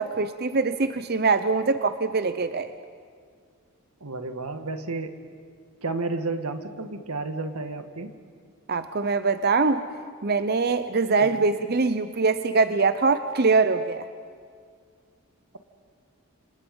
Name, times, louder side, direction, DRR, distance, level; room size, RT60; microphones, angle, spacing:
voice 1, 0.0-2.7 8.7-9.8 10.2-14.1, right 4 dB, 45° right, 11 dB, 0.7 m, -23 dB
voice 2, 4.0-5.2 5.8-8.1 11.2-11.5, right 3 dB, 90° right, 8 dB, 1.8 m, -32 dB
29.5 x 26.5 x 5.4 m, 2.1 s
head